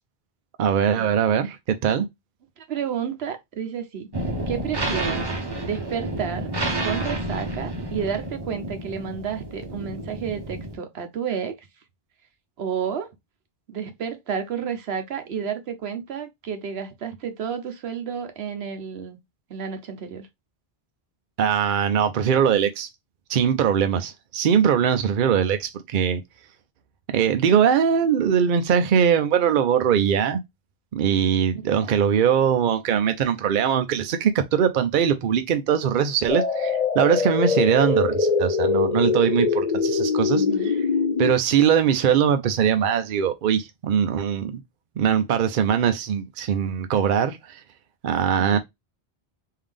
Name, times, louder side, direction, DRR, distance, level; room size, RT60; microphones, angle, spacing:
voice 1, 0.6-2.1 21.4-22.9 23.3-26.2 27.1-30.4 30.9-40.4 41.2-44.5 45.0-47.6 48.0-48.6, right 8 dB, 60° right, 0.7 m, -21 dB
voice 2, 2.6-4.1 4.5-5.3 5.6-6.5 6.8-11.7 12.6-13.1 13.7-19.2 19.5-20.3 31.6-32.0 40.3-40.8 48.3-48.6, right 7 dB, 80° right, 1.1 m, -31 dB
sound 1, 4.1-10.8, right 1 dB, 25° right, 0.8 m, -30 dB
sound 2, 36.3-41.3, left 5 dB, 45° left, 0.7 m, -23 dB
3.7 x 2.7 x 3.4 m
omnidirectional pair, 1.0 m